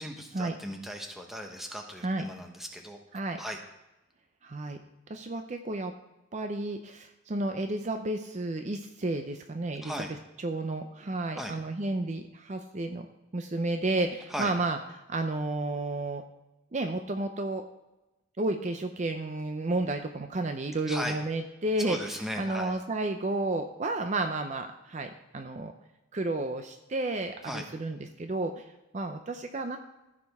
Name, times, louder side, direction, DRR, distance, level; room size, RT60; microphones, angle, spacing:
voice 1, 0.0-3.0 3.4-3.6 9.8-10.1 11.3-11.6 14.3-14.5 20.9-21.2 21.8-22.8 27.4-27.7, equal, ahead, 3 dB, 1.0 m, -37 dB
voice 2, 4.4-4.8 5.1-5.9 6.3-9.9 10.4-13.1 13.3-14.8 15.1-16.2 16.7-17.6 18.4-25.7 26.1-28.6 28.9-29.8, right 2 dB, 35° right, 6 dB, 0.5 m, -32 dB
15.5 x 5.1 x 3.5 m, 0.97 s
head